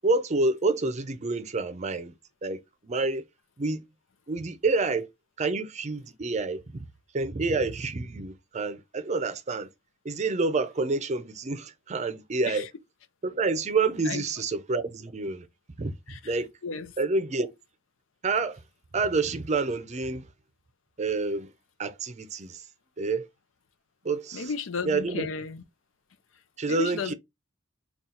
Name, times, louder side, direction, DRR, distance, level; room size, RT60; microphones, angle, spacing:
voice 1, 0.0-2.1 2.4-3.2 3.6-3.8 4.3-5.1 5.4-6.8 7.1-9.7 10.0-12.7 13.2-15.5 15.8-16.5 17.0-17.5 18.2-18.6 18.9-20.3 21.0-21.5 21.8-22.6 23.0-23.3 24.0-24.5 24.8-25.3 26.6-27.1, right 3 dB, 35° right, 0.5 m, -28 dB
voice 2, 24.3-25.6 26.7-27.1, left 5 dB, 85° left, 0.6 m, -33 dB
3.8 x 2.3 x 4.1 m
head